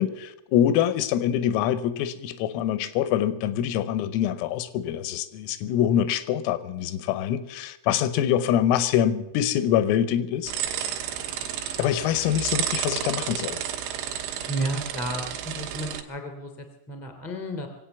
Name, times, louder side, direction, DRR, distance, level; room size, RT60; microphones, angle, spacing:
voice 1, 0.0-10.5 11.8-13.6, left 10 dB, 90° left, 13 dB, 3.6 m, -25 dB
sound 1, 10.5-16.0, right 10 dB, 75° right, 3.3 m, -31 dB
voice 2, 14.5-17.7, right 1 dB, ahead, 5 dB, 0.6 m, -32 dB
23.5 x 8.6 x 7.1 m, 0.90 s
omnidirectional pair, 5.9 m